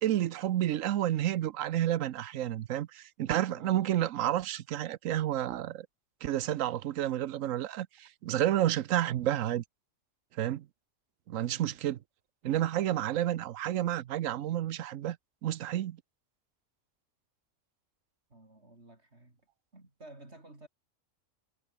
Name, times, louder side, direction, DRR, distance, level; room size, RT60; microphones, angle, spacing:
voice 1, 0.0-5.9 6.2-9.6 10.4-10.7 11.3-12.0 12.4-15.2 15.4-16.0, right 12 dB, 85° right, 1.1 m, -30 dB
voice 2, 3.5-3.9 11.4-11.8 18.3-19.4 19.7-20.7, right 2 dB, 55° right, 5.1 m, -53 dB
omnidirectional pair, 1.3 m